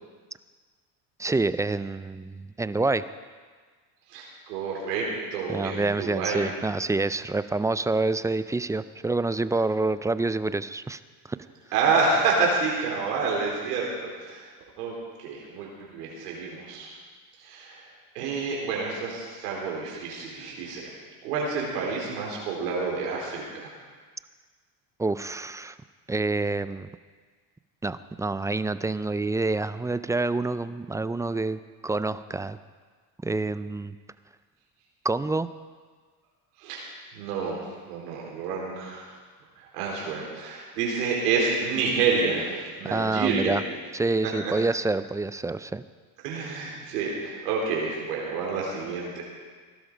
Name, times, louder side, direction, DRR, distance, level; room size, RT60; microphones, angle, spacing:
voice 1, 1.2-3.0 5.5-11.0 11.3-11.4 25.0-25.8 26.1-26.9 27.8-32.6 33.2-34.0 35.0-35.5 42.9-43.6 43.9-45.8, right 3 dB, 10° right, 14 dB, 0.3 m, -27 dB
voice 2, 4.1-6.5 11.7-14.4 14.8-16.9 17.4-17.8 18.1-20.9 21.2-23.7 36.6-36.9 37.1-39.1 39.6-43.6 44.2-44.5 46.2-49.2, right 4 dB, 90° right, -3 dB, 4.4 m, -28 dB
17.5 x 12.0 x 5.0 m, 1.5 s
supercardioid pair, 85°, 46 cm